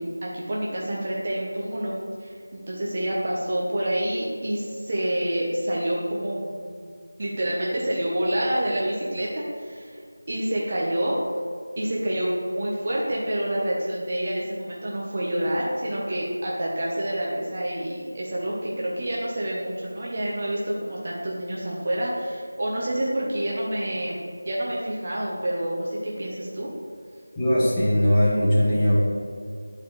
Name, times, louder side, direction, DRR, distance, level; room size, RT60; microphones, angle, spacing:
voice 1, 0.0-1.9 2.2-6.5 6.8-6.9 7.2-10.0 10.3-11.2 11.8-26.7, right 1 dB, 35° right, -4 dB, 0.9 m, -28 dB
voice 2, 27.4-28.9, equal, 10° left, -10 dB, 1.2 m, -20 dB
9.4 x 4.6 x 3.2 m, 2.2 s
figure-of-eight pair, 170°, 0 cm